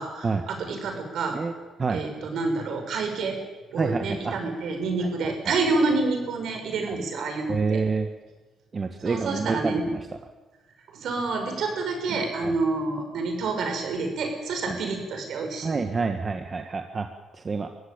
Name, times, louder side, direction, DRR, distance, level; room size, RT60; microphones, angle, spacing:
voice 1, 0.0-1.4 1.9-3.4 3.7-7.8 9.0-9.8 10.9-15.8, right 3 dB, 75° right, 4 dB, 6.7 m, -28 dB
voice 2, 3.8-4.4 5.0-5.5 6.9-7.0 7.5-8.1 8.7-10.0 12.4-12.6 14.7-14.8 15.6-17.1 17.3-17.7, right 4 dB, 40° right, 6 dB, 1.7 m, -28 dB
23.5 x 16.0 x 9.1 m, 1.2 s
cardioid pair, 80°, 0 cm